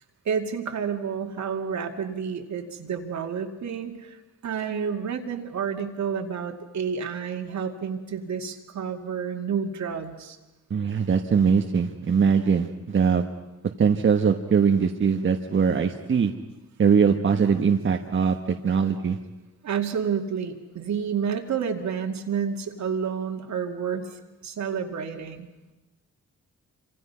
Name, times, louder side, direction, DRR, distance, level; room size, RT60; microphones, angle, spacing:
voice 1, 0.2-10.4 19.6-25.5, right 7 dB, 70° right, 4 dB, 2.3 m, -30 dB
voice 2, 10.7-13.2 13.8-16.3 16.8-18.4 18.6-19.2, right 6 dB, 40° right, 3 dB, 1.3 m, -21 dB
27.5 x 26.5 x 5.6 m, 1.1 s
wide cardioid pair, 125°, 30 cm